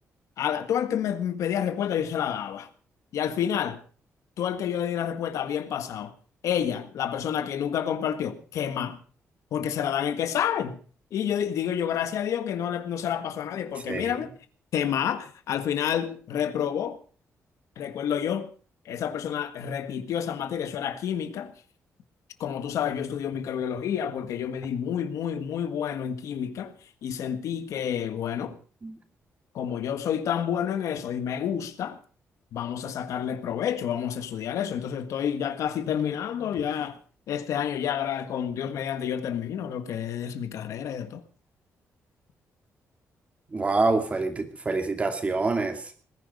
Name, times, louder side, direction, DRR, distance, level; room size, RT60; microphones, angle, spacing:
voice 1, 0.4-2.7 3.1-3.8 4.4-6.1 6.4-9.0 9.5-10.8 11.1-14.3 14.7-17.0 17.8-18.5 18.8-21.5 22.4-26.7 27.0-28.6 29.5-32.0 32.5-37.0 37.3-41.2, left 9 dB, 85° left, 1.6 m, -29 dB
voice 2, 13.9-14.2 28.8-29.0 43.5-45.9, right 3 dB, 25° right, 2.5 m, -26 dB
20.0 x 10.5 x 5.4 m
cardioid pair, 140°, 5 cm